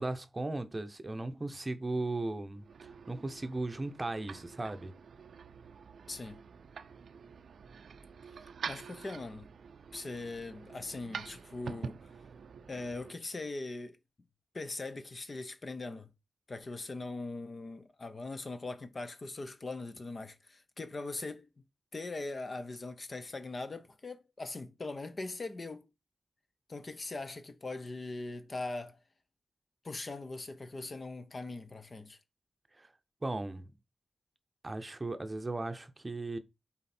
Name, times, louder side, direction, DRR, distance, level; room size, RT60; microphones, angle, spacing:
voice 1, 0.0-4.9 32.8-32.9 33.2-33.7 34.6-36.4, right 2 dB, 25° right, 0.8 m, -37 dB
sound 1, 2.5-13.1, right 6 dB, 80° right, 0.5 m, -47 dB
voice 2, 6.1-6.4 8.7-9.5 9.9-12.0 12.7-14.0 14.5-16.1 16.5-21.5 21.9-25.8 26.7-29.0 29.8-32.2, left 3 dB, 40° left, 0.8 m, -41 dB
7.6 x 4.3 x 4.3 m
wide cardioid pair, 95°, 0 cm